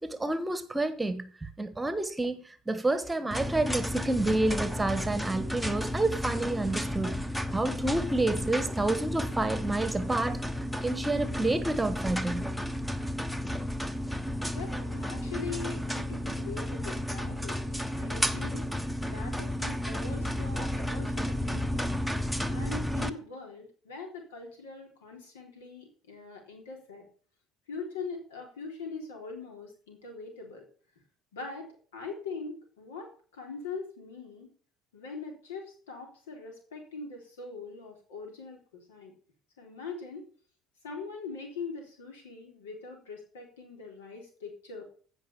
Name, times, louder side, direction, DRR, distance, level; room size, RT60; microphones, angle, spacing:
voice 1, 0.0-7.2 7.5-12.5, right 2 dB, 10° right, 1.4 m, -29 dB
sound 1, 3.3-23.1, left 1 dB, 5° left, 1.0 m, -32 dB
voice 2, 14.5-18.8 19.1-21.8 22.5-27.1 27.7-30.6 31.3-31.7 31.9-34.5 34.9-39.1 39.6-40.2 40.8-44.8, left 4 dB, 75° left, 3.7 m, -42 dB
16.0 x 5.4 x 7.0 m
figure-of-eight pair, 60°, 0 cm